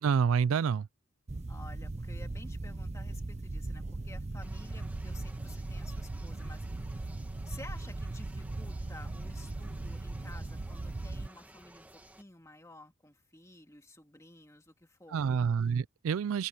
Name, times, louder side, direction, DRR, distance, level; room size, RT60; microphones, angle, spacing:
voice 1, 0.0-0.9 15.1-16.5, right 6 dB, 80° right, 0.4 m, -28 dB
sound 1, 1.3-11.3, right 2 dB, 30° right, 0.6 m, -38 dB
voice 2, 1.5-6.7 7.5-11.9 12.2-15.3, left 2 dB, 15° left, 2.1 m, -52 dB
sound 2, 4.4-12.2, right 1 dB, 5° right, 1.5 m, -56 dB
open air
head